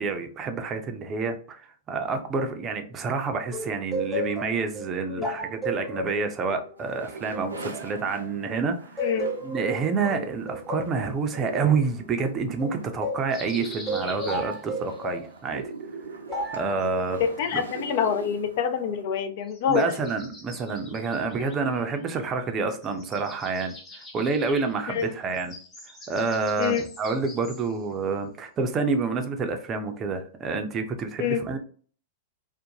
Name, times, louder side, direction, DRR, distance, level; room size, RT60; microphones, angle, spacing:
voice 1, 0.0-9.2 9.4-15.7 16.5-17.2 17.5-17.6 19.7-23.7 24.1-25.5 26.1-31.6, right 4 dB, 30° right, 6 dB, 0.5 m, -28 dB
sound 1, 3.5-8.5 9.0-13.3 13.9-15.3 16.3-16.7, right 1 dB, 5° left, 0.7 m, -33 dB
sound 2, 6.8-19.0, right 4 dB, 85° right, 0.5 m, -42 dB
sound 3, 13.3-15.0 16.4-17.5 19.4-22.4 22.7-27.9, left 1 dB, 25° left, 1.0 m, -46 dB
voice 2, 17.2-19.8 24.9-25.1 26.6-26.8 31.2-31.4, left 8 dB, 55° left, 8 dB, 0.4 m, -26 dB
2.5 x 2.1 x 2.8 m, 0.43 s
figure-of-eight pair, 100°, 0 cm